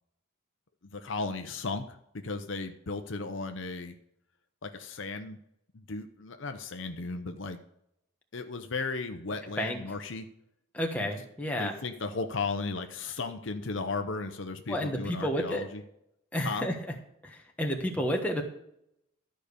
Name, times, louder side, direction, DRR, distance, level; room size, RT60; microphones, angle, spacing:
voice 1, 0.8-2.0 2.2-3.9 4.6-5.4 5.7-7.6 8.3-10.3 11.0-11.1 11.6-15.8 16.4-16.7, left 3 dB, 60° left, 7 dB, 0.7 m, -35 dB
voice 2, 10.7-11.7 14.7-15.6 16.3-16.8 17.2-18.4, equal, 5° left, 1 dB, 1.2 m, -31 dB
13.0 x 5.0 x 6.7 m, 0.78 s
head